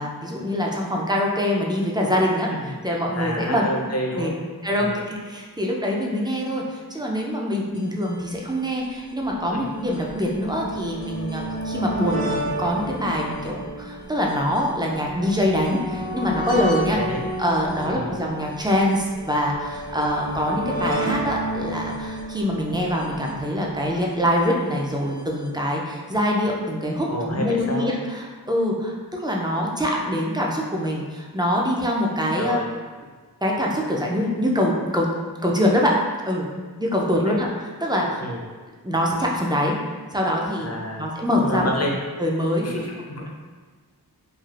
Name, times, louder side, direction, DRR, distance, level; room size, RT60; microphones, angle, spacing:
voice 1, 0.0-3.6 4.1-4.3 4.6-17.0 17.4-32.6 33.4-35.1 35.4-36.0 36.3-36.5 36.8-38.2 38.8-39.8 40.1-40.7 41.0-41.7 42.2-42.7, equal, 10° right, -2 dB, 0.4 m, -24 dB
voice 2, 3.2-4.3 4.7-4.9 9.5-9.6 16.9-17.2 17.9-18.2 27.1-27.9 32.4-32.7 37.3-37.4 38.2-38.4 40.6-41.1 41.4-41.9 42.6-43.3, equal, 40° left, -1 dB, 0.6 m, -29 dB
sound 1, 7.7-7.8 8.0-8.1 9.0-24.2 25.2-25.3 25.4-25.5, right 1 dB, 60° right, 0.8 m, -32 dB
3.2 x 2.4 x 2.4 m, 1.4 s
wide cardioid pair, 55°, 39 cm